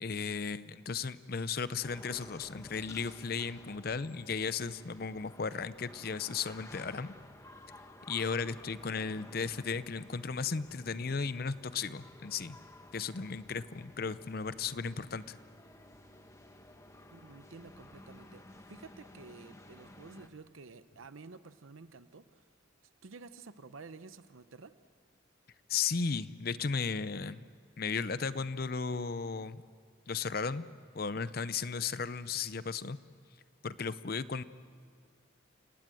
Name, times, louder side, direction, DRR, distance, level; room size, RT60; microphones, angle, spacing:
voice 1, 0.0-7.1 8.1-12.6 12.9-15.4 25.7-27.4 27.8-29.6 30.1-30.6 30.9-33.0 33.6-34.4, left 5 dB, 50° left, 15 dB, 0.6 m, -35 dB
sound 1, 1.8-20.3, left 1 dB, 15° left, 1.2 m, -54 dB
voice 2, 17.1-18.4 18.7-22.5 23.0-24.7, right 4 dB, 90° right, 12 dB, 0.8 m, -51 dB
29.5 x 18.5 x 7.7 m, 2.1 s
head